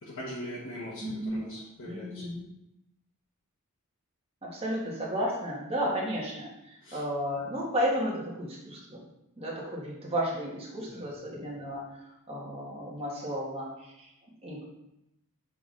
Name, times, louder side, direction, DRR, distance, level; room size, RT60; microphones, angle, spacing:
voice 1, 0.0-2.2 6.8-7.0 10.8-11.3, left 1 dB, 60° left, -7 dB, 1.3 m, -41 dB
voice 2, 1.0-1.4 1.8-2.4 4.4-9.0 9.4-11.8 12.3-14.1 14.4-14.6, equal, 25° right, -3 dB, 1.4 m, -33 dB
7.1 x 3.7 x 3.8 m, 0.86 s
head